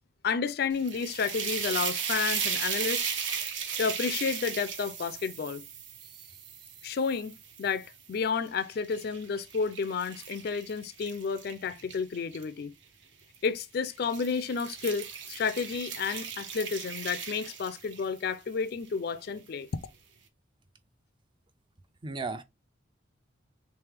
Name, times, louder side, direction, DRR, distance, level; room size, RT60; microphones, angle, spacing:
voice 1, 0.2-3.1 3.8-5.6 6.8-12.7 13.4-19.7, left 5 dB, 50° left, 0.3 m, -31 dB
sound 1, 0.7-7.9 8.5-12.4 13.3-13.6 14.0-18.2, right 7 dB, 65° right, 0.8 m, -36 dB
voice 2, 22.0-22.4, right 3 dB, 25° right, 0.4 m, -36 dB
3.3 x 3.1 x 3.3 m
head